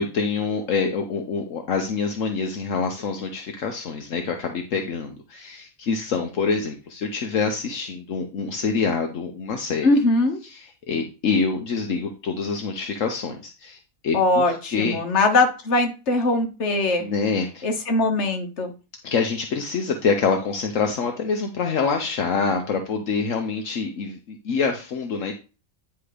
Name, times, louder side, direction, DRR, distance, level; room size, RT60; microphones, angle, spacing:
voice 1, 0.0-9.9 10.5-15.0 17.0-17.7 19.0-25.3, left 5 dB, 75° left, 3 dB, 1.3 m, -26 dB
voice 2, 9.8-10.4 14.1-17.1 17.6-18.7, left 2 dB, 60° left, 5 dB, 1.5 m, -21 dB
9.8 x 3.5 x 5.0 m, 0.32 s
omnidirectional pair, 1.4 m